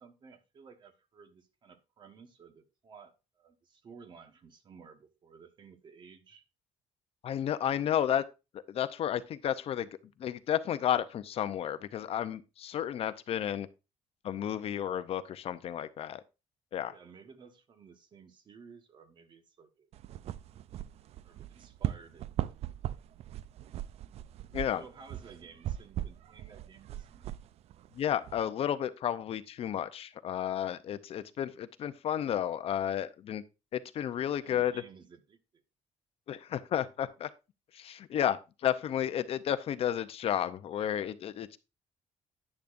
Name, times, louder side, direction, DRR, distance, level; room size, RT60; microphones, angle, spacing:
voice 1, 0.0-6.4 16.9-19.9 20.2-20.3 21.2-22.3 24.8-27.4 34.1-35.6, right 5 dB, 40° right, 1.3 m, -55 dB
voice 2, 7.2-8.2 8.7-9.9 10.2-13.7 14.2-16.2 16.7-16.9 24.5-24.8 27.9-33.4 33.7-34.8 36.3-37.3 37.7-41.6, left 10 dB, 50° left, 0.6 m, -32 dB
sound 1, 19.9-28.4, right 12 dB, 60° right, 0.4 m, -39 dB
10.5 x 10.0 x 2.5 m
cardioid pair, 160°, 12 cm